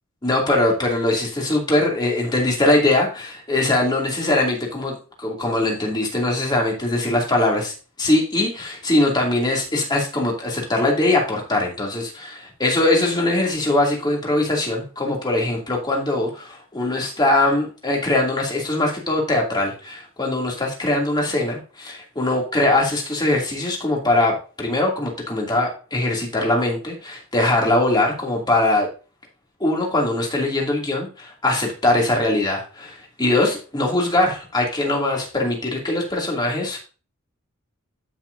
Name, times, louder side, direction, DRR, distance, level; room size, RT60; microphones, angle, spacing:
voice 1, 0.2-7.7 8.0-28.9 29.6-36.8, left 2 dB, 20° left, -1 dB, 2.6 m, -21 dB
13.0 x 6.1 x 2.7 m, 0.35 s
head